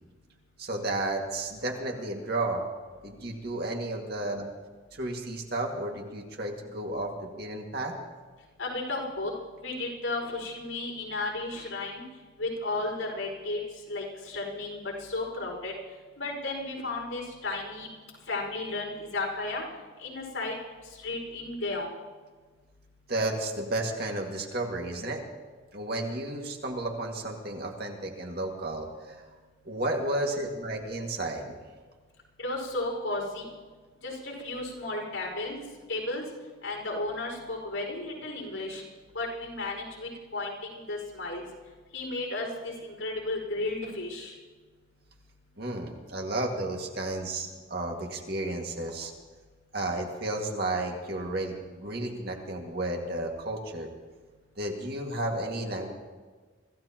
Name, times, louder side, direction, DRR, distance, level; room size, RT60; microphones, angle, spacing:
voice 1, 0.6-2.6 3.0-4.5 5.0-7.9 23.1-25.2 25.7-29.2 29.7-31.5 45.6-49.1 49.7-53.9 54.6-55.9, right 2 dB, 50° right, 1 dB, 2.1 m, -32 dB
voice 2, 8.6-9.3 9.6-12.0 12.4-13.6 13.9-15.7 16.2-17.9 18.3-19.6 20.0-20.5 20.8-21.9 32.4-33.5 34.0-35.6 35.9-36.2 36.6-38.8 39.1-41.5 41.9-44.3, left 2 dB, 85° left, -2 dB, 5.3 m, -33 dB
25.0 x 15.5 x 3.0 m, 1.4 s
head